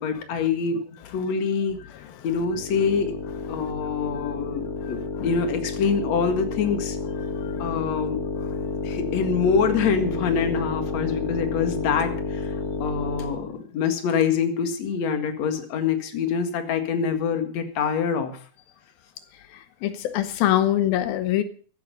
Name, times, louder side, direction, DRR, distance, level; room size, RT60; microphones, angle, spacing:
voice 1, 0.0-1.8 2.2-3.2 3.5-7.0 7.6-8.3 8.8-18.4, left 6 dB, 55° left, 6 dB, 2.9 m, -25 dB
sound 1, 2.5-13.5, left 4 dB, 30° left, 1.9 m, -30 dB
voice 2, 7.2-7.7 19.5-21.4, left 12 dB, 85° left, 11 dB, 2.8 m, -24 dB
15.0 x 13.0 x 5.3 m, 0.43 s
omnidirectional pair, 4.1 m